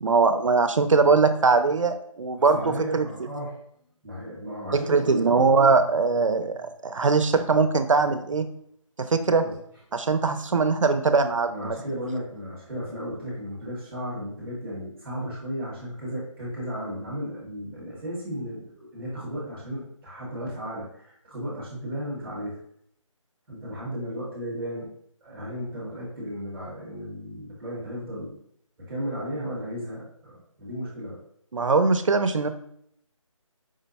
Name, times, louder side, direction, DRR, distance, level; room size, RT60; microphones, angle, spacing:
voice 1, 0.0-3.0 4.7-8.5 9.0-9.4 9.9-11.8 31.5-32.5, right 4 dB, 65° right, 9 dB, 0.6 m, -21 dB
voice 2, 2.4-3.5 4.0-5.2 9.4-9.5 11.5-22.6 23.5-24.9 25.2-28.3 28.9-31.2, equal, 5° right, -7 dB, 0.9 m, -34 dB
5.0 x 2.1 x 4.0 m, 0.68 s
figure-of-eight pair, 175°, 17 cm